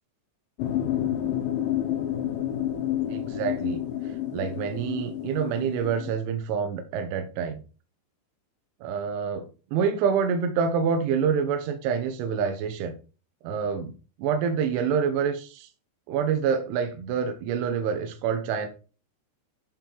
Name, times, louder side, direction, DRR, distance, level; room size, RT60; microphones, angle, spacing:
sound 1, 0.6-6.1, left 11 dB, 90° left, 3.3 m, -29 dB
voice 1, 3.1-3.8 4.3-7.6 8.8-9.5 9.7-12.9 13.4-13.9 14.2-15.7 16.1-18.7, right 6 dB, 85° right, 6 dB, 3.4 m, -27 dB
11.5 x 3.9 x 4.5 m, 0.35 s
omnidirectional pair, 5.3 m